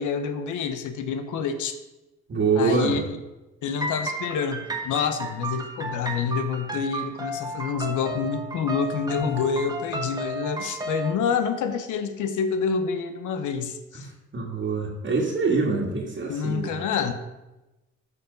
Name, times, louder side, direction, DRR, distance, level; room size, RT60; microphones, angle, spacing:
voice 1, 0.0-1.7 2.5-3.2 3.6-14.1 16.3-17.1, left 6 dB, 80° left, 9 dB, 0.9 m, -27 dB
voice 2, 2.3-3.0 9.2-9.3 14.0-14.1 14.3-16.8, right 4 dB, 40° right, -3 dB, 1.8 m, -25 dB
sound 1, 3.8-11.2, right 2 dB, 15° right, 1.3 m, -33 dB
13.0 x 4.9 x 5.3 m, 1.0 s
cardioid pair, 90°, 30 cm